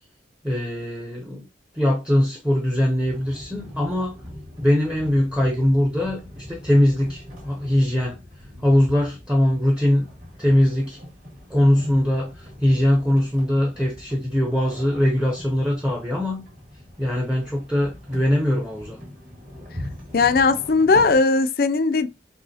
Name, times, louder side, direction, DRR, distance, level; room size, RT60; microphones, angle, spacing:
voice 1, 0.4-1.5 1.7-4.2 4.6-8.2 8.6-10.1 10.4-11.0 11.5-16.5 17.0-19.0, left 1 dB, 5° right, 0.6 m, -21 dB
sound 1, 3.0-21.2, left 1 dB, 45° right, 2.0 m, -41 dB
voice 2, 20.1-22.1, left 4 dB, 55° left, 0.4 m, -18 dB
5.4 x 3.3 x 2.8 m
head